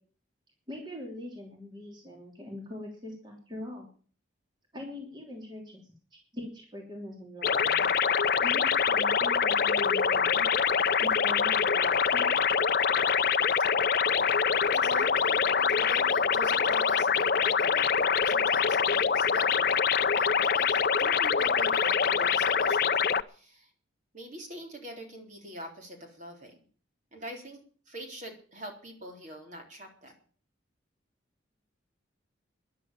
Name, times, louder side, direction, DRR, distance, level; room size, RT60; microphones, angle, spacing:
voice 1, 0.7-3.9 4.7-7.9 8.4-10.5 11.0-12.3, left 1 dB, 25° right, 1 dB, 3.1 m, -42 dB
sound 1, 7.4-23.2, left 6 dB, 50° left, 0.6 m, -25 dB
voice 2, 14.7-23.7 24.1-26.5 27.1-30.1, equal, 40° right, 2 dB, 3.6 m, -44 dB
13.0 x 11.0 x 7.6 m, 0.43 s
head